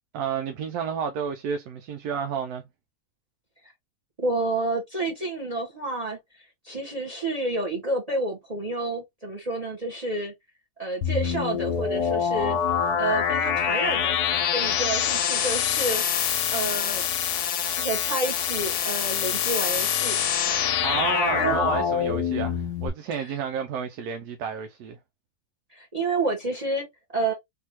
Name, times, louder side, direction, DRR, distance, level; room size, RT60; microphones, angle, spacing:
voice 1, 0.1-2.7 20.8-25.0, right 6 dB, 80° right, 1.1 m, -30 dB
voice 2, 4.2-6.2 6.6-10.3 10.8-14.2 14.5-16.0 16.5-17.1 17.7-20.2 20.5-20.8 21.4-21.6 23.1-23.3 25.7-27.3, right 2 dB, 30° right, 1.0 m, -29 dB
sound 1, 11.0-22.9, left 8 dB, 85° left, 1.2 m, -25 dB
3.5 x 2.7 x 2.9 m
omnidirectional pair, 1.6 m